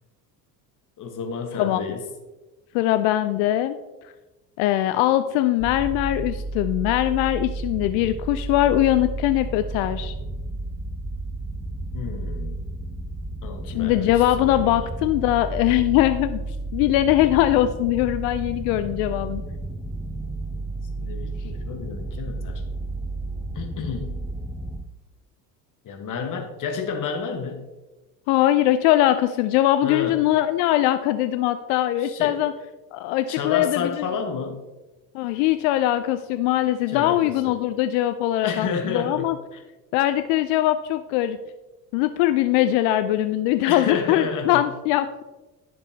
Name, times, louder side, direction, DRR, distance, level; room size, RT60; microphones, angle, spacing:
voice 1, 1.0-2.0 11.9-12.7 13.4-14.8 21.0-22.6 23.5-24.1 25.8-27.6 29.8-30.2 32.0-32.4 33.3-34.6 36.9-37.5 38.4-39.6 43.7-44.6, left 5 dB, 40° left, 4 dB, 1.5 m, -31 dB
voice 2, 2.7-3.8 4.6-10.1 13.7-16.4 16.7-19.4 28.3-32.5 32.9-34.1 35.1-39.4 39.9-41.4 41.9-45.2, left 14 dB, 60° left, 11 dB, 0.5 m, -21 dB
sound 1, 5.6-24.8, right 2 dB, 5° right, 0.3 m, -32 dB
10.0 x 6.9 x 2.8 m, 1.1 s
hypercardioid pair, 70°, 49 cm